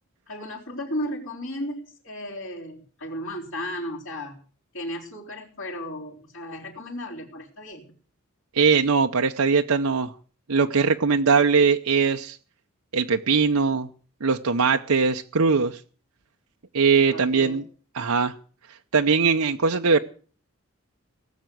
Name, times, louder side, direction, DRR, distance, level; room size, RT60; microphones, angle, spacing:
voice 1, 0.3-4.4 4.7-7.8 17.1-17.6, equal, 60° left, -7 dB, 4.0 m, -34 dB
voice 2, 8.5-10.1 10.5-12.4 12.9-13.9 14.2-15.8 16.7-17.6 17.9-18.3 18.9-20.0, right 5 dB, 85° right, 5 dB, 0.8 m, -21 dB
18.5 x 7.4 x 9.3 m, 0.42 s
head